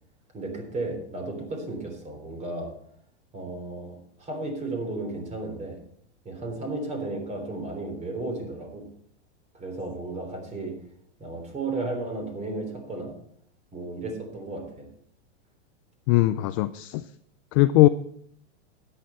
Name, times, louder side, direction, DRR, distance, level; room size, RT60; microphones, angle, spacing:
voice 1, 0.3-2.8 3.3-5.8 6.3-8.9 9.5-10.8 11.2-13.2 13.7-14.9, right 2 dB, 20° right, 5 dB, 3.5 m, -34 dB
voice 2, 16.1-17.0 17.5-17.9, left 17 dB, 30° left, 11 dB, 0.4 m, -20 dB
13.0 x 10.0 x 4.3 m, 0.65 s
supercardioid pair, 140°, 35 cm